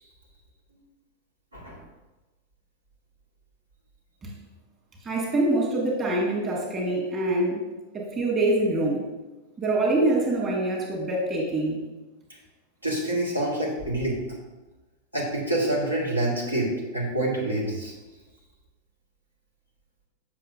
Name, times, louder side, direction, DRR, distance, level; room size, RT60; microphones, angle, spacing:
voice 1, 5.0-7.6 7.9-9.0 9.6-11.8, right 2 dB, 25° right, -3 dB, 1.7 m, -25 dB
voice 2, 12.8-14.2 15.1-17.9, right 1 dB, 85° right, -4 dB, 1.6 m, -27 dB
7.6 x 5.9 x 2.6 m, 1.1 s
figure-of-eight pair, 90°, 0 cm